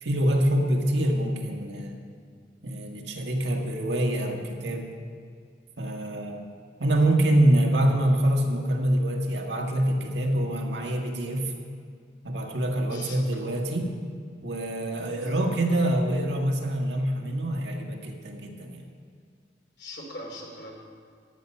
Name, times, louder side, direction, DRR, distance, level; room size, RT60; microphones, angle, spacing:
voice 1, 0.0-2.0 2.6-4.9 5.8-6.4 6.8-11.5 12.2-13.9 14.4-18.8, right 1 dB, 65° right, 1 dB, 1.6 m, -25 dB
voice 2, 12.9-13.4 15.1-15.5 19.8-20.7, left 1 dB, 70° left, 0 dB, 3.0 m, -41 dB
14.0 x 9.4 x 5.4 m, 2.1 s
head